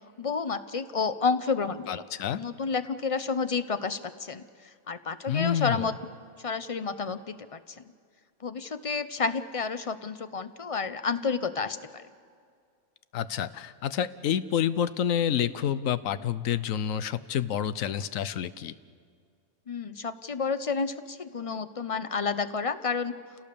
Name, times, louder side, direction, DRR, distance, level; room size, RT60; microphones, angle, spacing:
voice 1, 0.2-2.0 2.4-4.4 4.9-5.9 6.4-7.6 8.4-12.0 19.7-23.1, left 5 dB, 35° left, 11 dB, 0.5 m, -30 dB
voice 2, 1.9-2.4 5.3-5.9 13.1-18.7, left 9 dB, 70° left, 15 dB, 1.1 m, -28 dB
28.5 x 17.5 x 6.9 m, 2.1 s
omnidirectional pair, 1.5 m